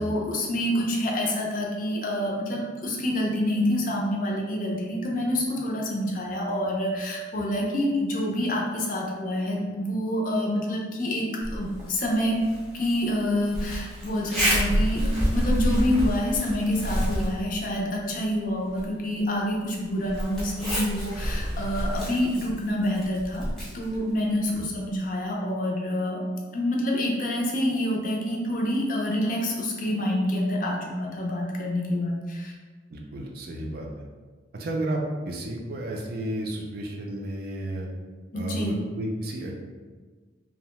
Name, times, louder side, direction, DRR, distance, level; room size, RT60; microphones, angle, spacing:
voice 1, 0.0-11.3 11.5-12.4 12.7-23.4 23.7-26.2 26.5-32.5 38.3-38.8, left 1 dB, 45° left, -2 dB, 0.4 m, -27 dB
Zipper (clothing), 11.4-25.0, equal, 5° left, 0.6 m, -30 dB
voice 2, 32.9-33.9 34.5-35.0 35.3-37.9 38.3-39.5, right 1 dB, 50° right, 0 dB, 0.4 m, -32 dB
2.7 x 2.1 x 3.0 m, 1.4 s
head